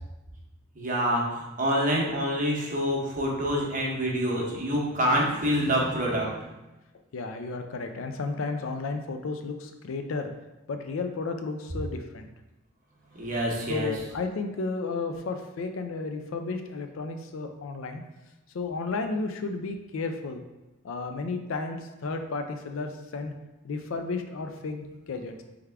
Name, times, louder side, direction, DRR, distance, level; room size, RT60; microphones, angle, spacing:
voice 1, 0.7-6.5 13.1-13.9, equal, 40° right, -2 dB, 0.8 m, -27 dB
voice 2, 7.1-10.3 10.7-12.3 13.7-18.0 18.5-20.4 20.8-23.3 23.6-25.4, left 3 dB, 80° left, 6 dB, 0.4 m, -33 dB
3.5 x 3.4 x 3.3 m, 1.0 s
head